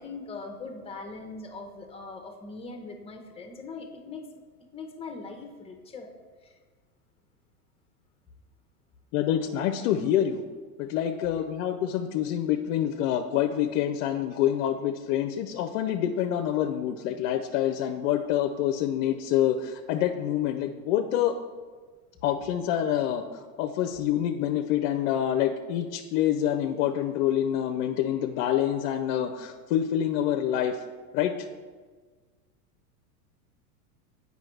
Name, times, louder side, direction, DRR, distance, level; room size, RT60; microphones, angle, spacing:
voice 1, 0.0-4.3 4.7-6.1 6.4-6.6, left 3 dB, 15° left, 4 dB, 0.7 m, -41 dB
voice 2, 9.1-10.4 10.8-21.3 22.2-30.8 31.1-31.5, left 10 dB, 55° left, 6 dB, 0.5 m, -27 dB
7.5 x 5.3 x 3.1 m, 1.4 s
hypercardioid pair, 110°, 46 cm